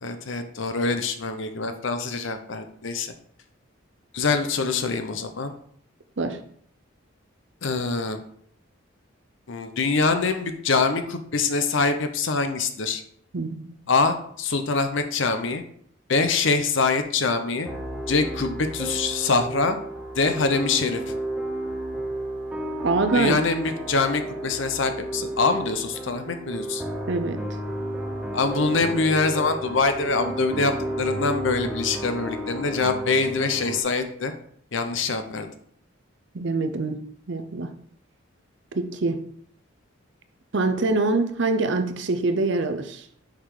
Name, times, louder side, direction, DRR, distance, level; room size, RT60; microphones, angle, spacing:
voice 1, 0.0-3.1 4.1-5.5 7.6-8.2 9.5-13.0 13.9-15.6 16.1-17.7 18.1-19.8 20.1-21.0 23.1-26.8 28.3-34.3 34.7-35.5, left 4 dB, 65° left, 8 dB, 0.7 m, -24 dB
sound 1, 17.6-33.8, right 1 dB, 5° right, 0.9 m, -32 dB
voice 2, 22.8-23.4 27.1-27.4 36.3-37.0 37.3-37.7 38.7-39.2 40.5-43.2, right 3 dB, 60° right, 8 dB, 0.7 m, -24 dB
6.4 x 4.1 x 4.8 m, 0.65 s
head